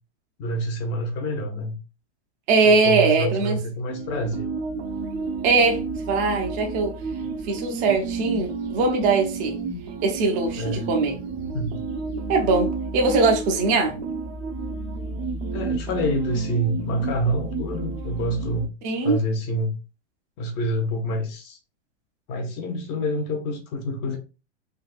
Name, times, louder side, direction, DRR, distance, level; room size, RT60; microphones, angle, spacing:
voice 1, 0.4-1.8 2.6-4.5 10.6-10.9 11.5-11.8 15.5-18.7 19.0-19.7 20.4-21.6 22.3-24.2, equal, 30° left, 0.6 m, -27 dB
voice 2, 2.5-3.6 5.4-5.8 6.1-6.9 7.4-9.6 10.0-11.2 12.3-13.9 18.8-19.2, right 3 dB, 25° right, 0.5 m, -21 dB
sound 1, 3.9-18.7, right 4 dB, 60° right, 0.8 m, -31 dB
3.5 x 2.3 x 2.4 m
supercardioid pair, 150°, 34 cm